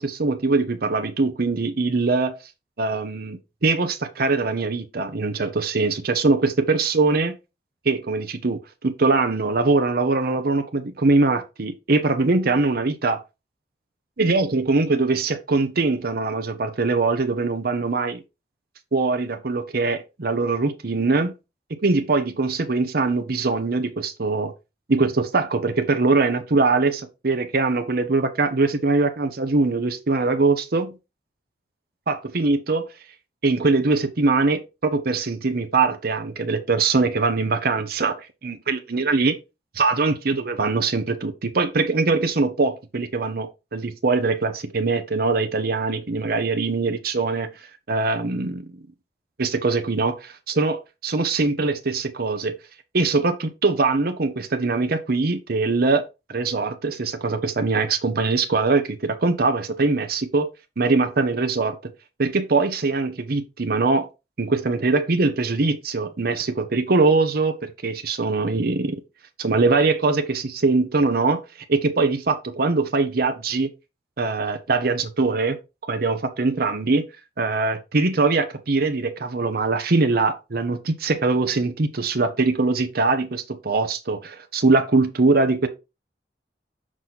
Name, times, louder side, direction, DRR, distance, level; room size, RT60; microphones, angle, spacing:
voice 1, 0.0-2.3 2.8-7.3 7.8-13.2 14.2-18.2 18.9-21.3 21.8-24.5 24.9-31.0 32.1-32.9 33.4-39.3 39.7-47.5 47.9-48.6 49.4-52.5 52.9-60.5 60.8-61.8 62.2-64.1 64.4-69.0 69.4-71.4 71.7-73.7 74.2-75.6 75.8-77.0 77.4-85.7, right 3 dB, 60° right, 0.8 m, -22 dB
6.2 x 4.0 x 4.1 m
head